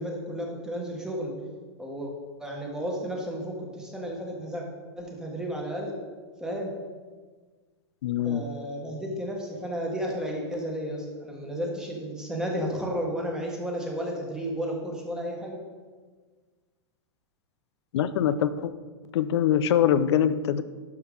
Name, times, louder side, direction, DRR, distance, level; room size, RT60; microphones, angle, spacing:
voice 1, 0.0-1.3 1.8-2.1 2.4-4.6 5.0-6.0 6.4-6.7 8.2-15.6, equal, 5° right, -1 dB, 1.5 m, -33 dB
voice 2, 8.0-8.4 17.9-18.7 19.1-20.6, left 9 dB, 70° left, 14 dB, 0.5 m, -23 dB
11.5 x 4.6 x 3.9 m, 1.4 s
hypercardioid pair, 130°, 14 cm